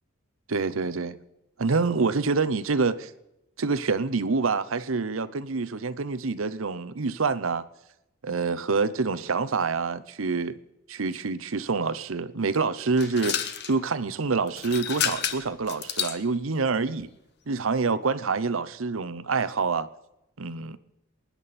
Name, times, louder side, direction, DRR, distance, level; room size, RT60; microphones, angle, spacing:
voice 1, 0.5-1.2 1.6-3.1 3.6-7.6 8.2-10.6 10.9-17.1 17.5-19.9 20.4-20.8, right 4 dB, 75° right, 0.8 m, -27 dB
sound 1, 13.0-13.8 14.5-16.2, left 8 dB, 55° left, 1.1 m, -30 dB
23.0 x 10.5 x 4.3 m
head